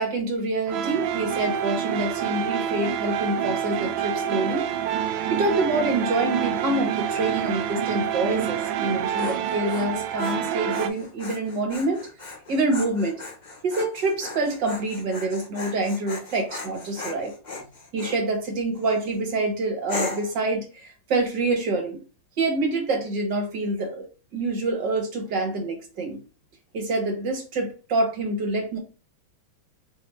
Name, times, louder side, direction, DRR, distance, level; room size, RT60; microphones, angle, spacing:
voice 1, 0.0-4.7 5.1-12.1 12.5-13.1 13.6-17.3 17.9-22.0 22.4-26.2 26.7-28.8, right 2 dB, 65° right, 2 dB, 2.0 m, -26 dB
sound 1, 0.7-10.9, right 9 dB, 80° right, 1.3 m, -27 dB
Dog, 8.8-18.2 18.8-19.2 19.9-20.4, left 3 dB, 70° left, 0.4 m, -37 dB
5.3 x 2.7 x 3.4 m, 0.33 s
omnidirectional pair, 2.1 m